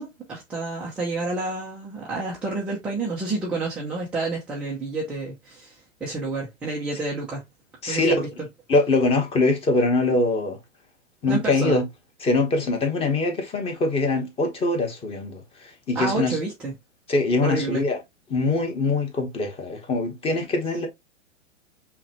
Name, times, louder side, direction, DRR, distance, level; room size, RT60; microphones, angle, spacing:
voice 1, 0.0-7.4 7.9-8.2 11.3-11.8 15.9-16.7 17.4-17.8, right 3 dB, 5° right, 0.3 m, -29 dB
voice 2, 7.8-8.3 8.7-10.6 11.2-11.8 12.2-15.4 15.9-16.4 17.1-18.0 18.3-20.9, left 2 dB, 15° left, 0.9 m, -23 dB
5.6 x 2.2 x 2.8 m
hypercardioid pair, 125°, 37 cm